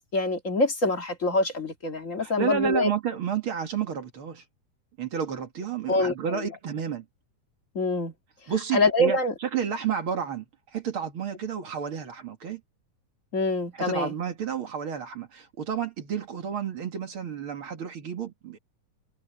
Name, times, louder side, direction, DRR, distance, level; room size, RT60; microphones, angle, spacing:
voice 1, 0.1-2.9 5.9-6.4 7.7-8.1 8.7-9.3 13.3-14.1, left 2 dB, 30° left, 1.5 m, -25 dB
voice 2, 2.2-4.4 5.0-7.1 8.5-10.4 10.7-12.6 13.7-18.6, right 8 dB, 50° right, 2.2 m, -31 dB
omnidirectional pair, 3.6 m